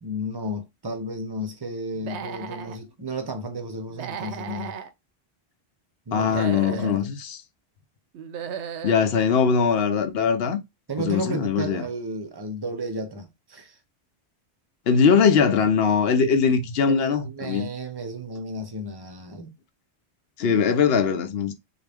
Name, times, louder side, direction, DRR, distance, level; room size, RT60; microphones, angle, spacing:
voice 1, 0.0-4.8 6.1-7.1 10.9-13.8 16.9-19.5, right 1 dB, 30° right, 0.5 m, -33 dB
Human voice / Animal, 1.9-2.8 3.9-4.9 6.2-7.0 8.1-9.0, right 7 dB, 90° right, 0.9 m, -35 dB
voice 2, 6.1-7.4 8.8-10.6 11.0-11.8 14.9-17.7 20.4-21.5, left 6 dB, 65° left, 0.8 m, -21 dB
3.9 x 2.4 x 3.4 m
omnidirectional pair, 1.1 m